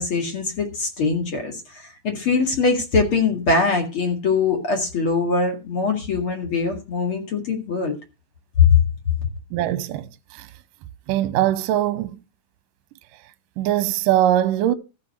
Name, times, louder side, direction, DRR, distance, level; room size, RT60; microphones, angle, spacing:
voice 1, 0.0-7.9 8.6-8.8, left 4 dB, 40° left, 2.5 m, -22 dB
voice 2, 9.5-10.1 10.4-10.5 11.1-12.2 13.6-14.7, right 12 dB, 75° right, 2.2 m, -21 dB
14.5 x 5.8 x 6.6 m
omnidirectional pair, 4.5 m